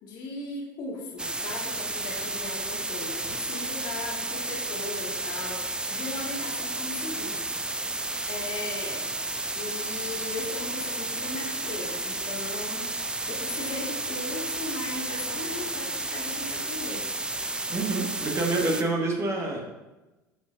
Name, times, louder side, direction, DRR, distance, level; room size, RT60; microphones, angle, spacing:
voice 1, 0.0-7.4 8.3-9.1 9.6-12.9 13.3-17.1, left 2 dB, 45° left, -1 dB, 2.0 m, -38 dB
sound 1, 1.2-18.8, right 2 dB, 10° right, 0.5 m, -32 dB
voice 2, 17.7-19.6, right 2 dB, 30° right, 0 dB, 1.7 m, -27 dB
12.0 x 5.2 x 2.6 m, 1.1 s
figure-of-eight pair, 70°, 10 cm